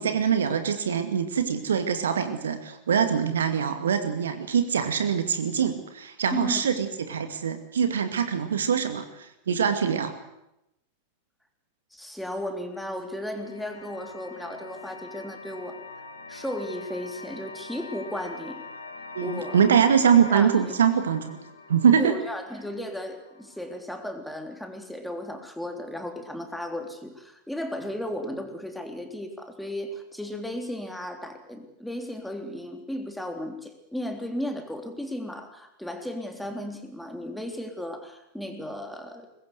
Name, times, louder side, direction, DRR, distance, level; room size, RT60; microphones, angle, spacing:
voice 1, 0.0-10.1 19.2-21.4 21.7-22.2, right 7 dB, 65° right, 9 dB, 2.3 m, -23 dB
voice 2, 6.3-6.7 11.9-15.8 16.3-18.6 19.2-19.6 20.3-20.6 22.0-39.3, left 1 dB, ahead, 5 dB, 3.6 m, -35 dB
sound 1, 12.7-23.8, left 3 dB, 65° left, 3.0 m, -44 dB
23.5 x 20.5 x 8.2 m, 0.86 s
figure-of-eight pair, 90°, 0 cm